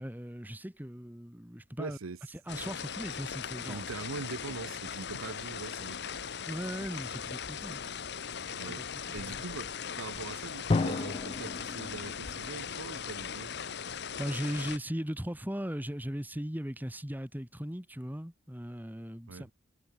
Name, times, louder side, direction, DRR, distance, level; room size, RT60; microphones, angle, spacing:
voice 1, 0.0-2.0 2.5-3.8 6.5-7.8 8.7-9.4 14.2-19.5, equal, 10° right, 1.9 m, -38 dB
voice 2, 1.8-2.2 3.7-6.2 8.5-8.8 9.1-9.7 10.0-13.5 19.3-19.5, right 4 dB, 90° right, 0.8 m, -42 dB
sound 1, 2.5-14.8, left 7 dB, 55° left, 1.1 m, -39 dB
Drum, 10.7-13.4, left 3 dB, 30° left, 0.3 m, -33 dB
head